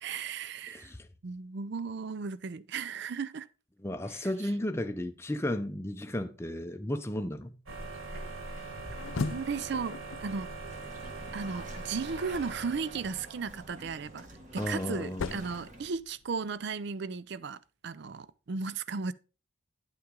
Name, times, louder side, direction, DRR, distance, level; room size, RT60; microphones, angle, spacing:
voice 1, 0.0-0.9 1.2-3.5 4.1-4.3 9.2-10.5 11.3-14.3 14.5-19.1, right 5 dB, 55° right, 0.4 m, -35 dB
voice 2, 0.7-1.1 3.8-7.5 14.6-15.3, left 1 dB, 10° left, 0.5 m, -34 dB
sound 1, 7.7-13.6, right 3 dB, 80° right, 1.6 m, -42 dB
sound 2, 8.6-11.7 13.9-16.5, left 4 dB, 80° left, 0.5 m, -40 dB
sound 3, 10.7-15.9, right 1 dB, 40° right, 1.8 m, -49 dB
9.9 x 5.8 x 3.7 m
head